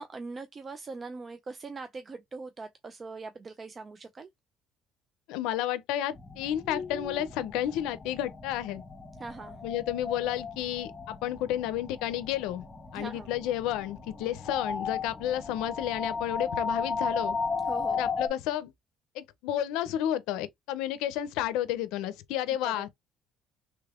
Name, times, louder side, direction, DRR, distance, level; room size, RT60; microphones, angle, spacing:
voice 1, 0.0-4.3 9.2-9.6 12.9-13.3 17.7-18.1 22.6-22.9, right 3 dB, 30° right, 0.4 m, -41 dB
voice 2, 5.3-8.8 9.6-12.6 12.9-17.4 17.9-18.7 19.1-22.9, left 12 dB, 85° left, 0.5 m, -31 dB
sound 1, 6.2-18.3, left 5 dB, 20° left, 0.8 m, -35 dB
3.3 x 3.2 x 2.4 m
cardioid pair, 115°, 0 cm